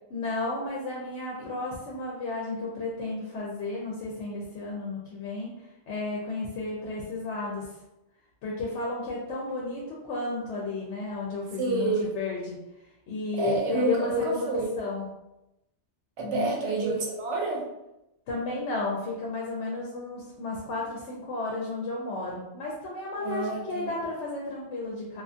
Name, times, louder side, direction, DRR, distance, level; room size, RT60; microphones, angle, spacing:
voice 1, 0.1-7.7 8.4-12.6 13.1-14.5 14.8-15.1 16.2-16.5 18.3-25.2, left 3 dB, 85° left, -3 dB, 0.9 m, -33 dB
voice 2, 11.6-12.1 13.4-14.7 16.2-17.7 23.2-23.9, right 2 dB, 85° right, 0 dB, 0.9 m, -28 dB
2.4 x 2.4 x 2.4 m, 0.93 s
omnidirectional pair, 1.2 m